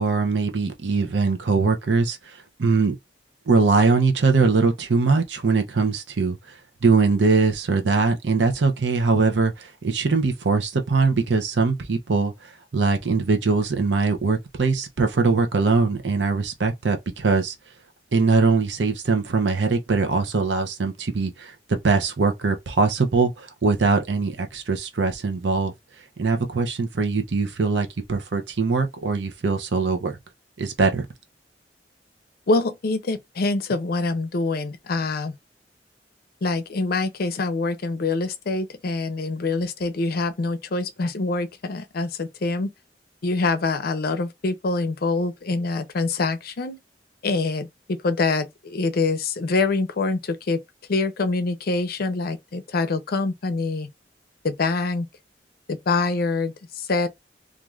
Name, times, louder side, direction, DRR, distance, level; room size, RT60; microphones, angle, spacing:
voice 1, 0.0-3.0 3.5-6.5 6.8-17.5 18.1-25.7 26.2-30.2 30.6-31.1, right 4 dB, 85° right, 0.6 m, -22 dB
voice 2, 32.5-35.3 36.4-42.7 43.2-46.8 47.2-50.6 50.9-53.9 54.4-55.1 55.7-57.1, left 3 dB, 60° left, 0.5 m, -25 dB
2.5 x 2.4 x 3.1 m
head